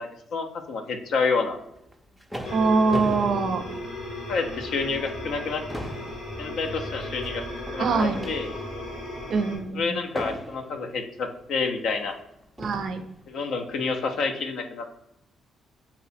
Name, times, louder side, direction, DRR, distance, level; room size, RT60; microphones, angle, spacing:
voice 1, 0.0-1.6 4.3-5.6 6.4-7.4 7.7-8.5 9.7-12.2 13.3-15.0, left 4 dB, 75° left, 5 dB, 0.5 m, -28 dB
sound 1, 1.8-4.4 4.9-5.1 5.4-8.9 10.2-10.9 11.8-11.9 12.6-13.1, equal, ahead, 0.4 m, -36 dB
sound 2, 2.4-9.6, left 1 dB, 90° left, 1.2 m, -36 dB
voice 2, 2.5-3.6 7.8-8.2 9.3-10.0 12.6-13.0, right 4 dB, 65° right, 8 dB, 0.4 m, -23 dB
2.7 x 2.1 x 4.0 m, 0.79 s
cardioid pair, 90°, 0 cm